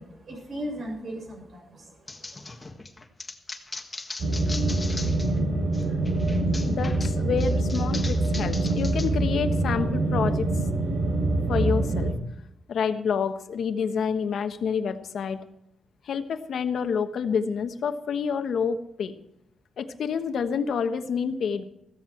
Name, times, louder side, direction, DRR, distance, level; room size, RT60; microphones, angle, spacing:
voice 1, 0.0-2.6, equal, 50° right, 0 dB, 6.9 m, -38 dB
sound 1, 2.1-5.4 5.7-9.1, left 3 dB, 20° left, 1.5 m, -39 dB
sound 2, 4.2-12.1, right 2 dB, 80° right, 3.8 m, -25 dB
voice 2, 6.6-10.5 11.5-12.1 12.7-15.4 16.0-19.2 19.8-21.7, left 6 dB, 70° left, 8 dB, 1.2 m, -28 dB
15.5 x 14.0 x 4.5 m, 0.77 s
wide cardioid pair, 125°, 0 cm